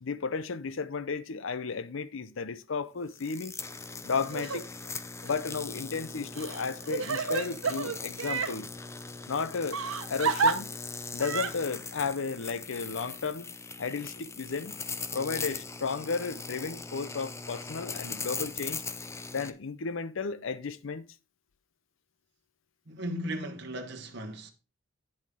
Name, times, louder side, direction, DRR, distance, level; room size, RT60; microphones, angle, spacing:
voice 1, 0.0-3.5 4.0-4.7 5.2-8.7 9.3-9.8 10.1-10.7 11.1-13.5 13.8-14.7 15.1-18.8 19.3-21.0, left 4 dB, 70° left, 0.6 m, -33 dB
sound 1, 3.1-19.5, left 4 dB, 15° left, 0.4 m, -40 dB
Crying sobbing, 4.3-4.6 5.2-5.3 6.4-8.5 9.7-10.5 11.2-11.5, right 5 dB, 85° right, 1.0 m, -29 dB
voice 2, 22.9-24.5, equal, 55° right, 1.1 m, -36 dB
8.8 x 7.5 x 3.6 m
head